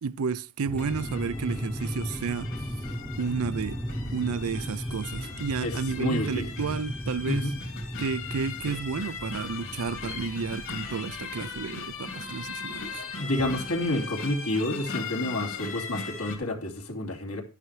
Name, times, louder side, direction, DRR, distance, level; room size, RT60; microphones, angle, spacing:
voice 1, 0.0-2.5 3.2-3.8 4.1-7.5 8.0-13.0, right 5 dB, 75° right, 0.5 m, -31 dB
sound 1, 0.6-14.0, equal, 5° left, 0.9 m, -37 dB
sound 2, 0.8-16.4, left 5 dB, 60° left, 2.8 m, -39 dB
voice 2, 5.6-6.5 7.2-7.5 13.2-17.4, left 1 dB, 75° left, 2.5 m, -29 dB
11.5 x 9.7 x 3.3 m
head